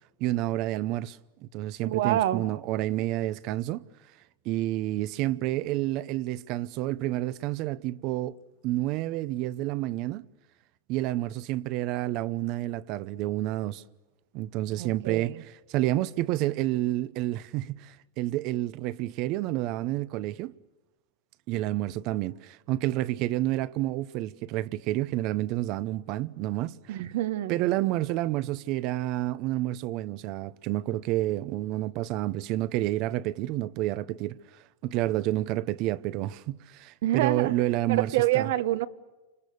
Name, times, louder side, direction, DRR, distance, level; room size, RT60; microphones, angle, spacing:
voice 1, 0.2-3.8 4.4-10.3 10.9-13.8 14.3-20.5 21.5-27.0 27.5-34.4 34.8-38.5, right 15 dB, 45° right, 0.8 m, -29 dB
voice 2, 1.8-2.4 14.8-15.4 26.9-27.6 37.0-37.5 37.9-38.9, right 14 dB, 65° right, 1.2 m, -27 dB
29.5 x 26.5 x 6.8 m
supercardioid pair, 135°, 0 cm